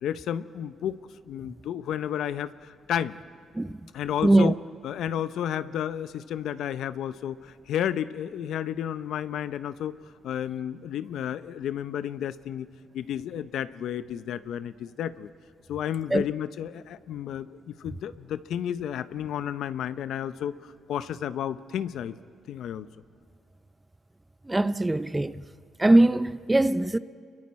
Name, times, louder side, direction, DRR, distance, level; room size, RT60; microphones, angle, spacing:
voice 1, 0.0-1.0 1.3-3.1 3.9-4.5 4.8-10.0 10.2-12.7 12.9-15.3 15.7-22.2 22.5-22.9, left 10 dB, 75° left, 0.6 m, -32 dB
voice 2, 4.2-4.5 16.1-16.2 24.5-25.4 25.8-27.0, right 2 dB, 15° right, 0.5 m, -21 dB
28.5 x 23.0 x 4.3 m
cardioid pair, 90°, 0 cm